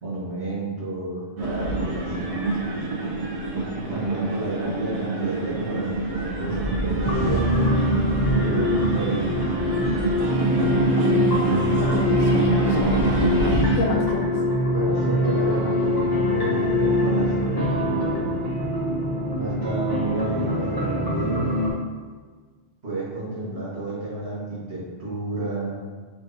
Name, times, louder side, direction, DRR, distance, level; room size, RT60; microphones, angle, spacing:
voice 1, 0.0-2.3 3.5-7.5 8.3-9.5 14.7-18.3 19.3-21.5 22.8-25.8, right 2 dB, 55° right, -8 dB, 1.8 m, -31 dB
sound 1, 1.4-13.8, right 2 dB, 80° right, 1.3 m, -26 dB
sound 2, 7.0-21.7, left 1 dB, 20° left, 1.0 m, -24 dB
voice 2, 11.0-13.1 13.7-14.3 23.4-23.5, left 3 dB, 75° left, 1 dB, 1.1 m, -30 dB
5.0 x 3.7 x 2.7 m, 1.5 s
omnidirectional pair, 1.3 m